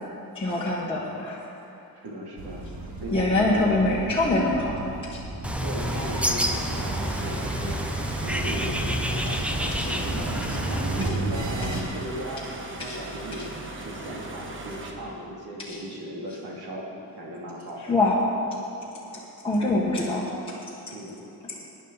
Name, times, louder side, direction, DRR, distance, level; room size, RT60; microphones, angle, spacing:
voice 1, 0.3-1.4 3.1-4.8 5.1-5.2 9.3-9.4 9.8-9.9 10.5-10.6 11.0-11.1 11.7-11.8 12.8-13.0 13.4-13.5 15.7-15.8 17.9-18.2 19.4-20.2 20.9-21.0 21.5-21.6, left 2 dB, 15° left, -7 dB, 1.3 m, -24 dB
voice 2, 1.9-2.6 3.0-3.8 5.6-10.3 10.6-13.4 13.8-16.9 17.2-18.0 20.9-21.2, right 1 dB, 75° right, -3 dB, 2.7 m, -36 dB
sound 1, 2.4-11.8, right 2 dB, 50° right, 1.7 m, -34 dB
Bird, 5.4-11.1, equal, 5° right, 0.5 m, -29 dB
sound 2, 5.8-14.9, right 2 dB, 30° right, 1.2 m, -38 dB
19.0 x 10.5 x 4.0 m, 2.8 s
wide cardioid pair, 175°, 38 cm